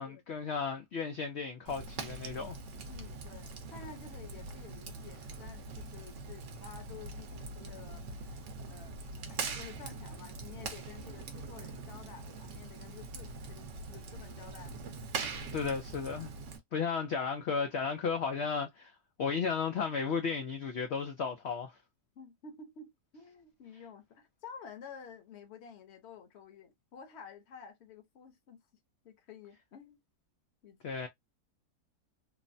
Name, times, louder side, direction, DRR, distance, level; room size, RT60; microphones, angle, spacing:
voice 1, 0.0-2.6 15.5-16.3 16.7-21.7 30.8-31.1, left 5 dB, 80° left, 0.5 m, -34 dB
Fire, 1.7-16.6, right 4 dB, 55° right, 0.9 m, -43 dB
voice 2, 2.8-9.0 9.3-15.7 22.2-28.6 29.0-30.0 30.6-31.0, left 6 dB, 55° left, 0.9 m, -52 dB
3.2 x 2.1 x 2.5 m
omnidirectional pair, 1.8 m